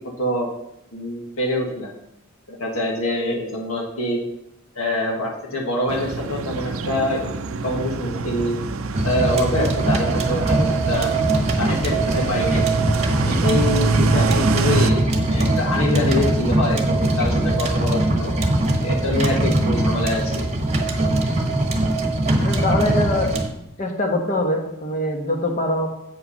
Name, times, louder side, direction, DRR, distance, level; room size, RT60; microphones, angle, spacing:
voice 1, 0.2-0.5 0.9-1.9 2.5-4.2 4.7-8.6 9.0-11.1 11.6-12.7 13.2-18.3 18.8-20.4, left 1 dB, 85° left, -1 dB, 1.6 m, -25 dB
sound 1, 5.9-14.9, right 4 dB, 75° right, 0.5 m, -25 dB
sound 2, 8.9-23.5, right 2 dB, 30° right, 1.1 m, -21 dB
voice 2, 22.4-23.4 23.8-25.9, left 1 dB, 40° left, 3 dB, 1.2 m, -23 dB
7.8 x 5.6 x 5.6 m, 0.81 s
head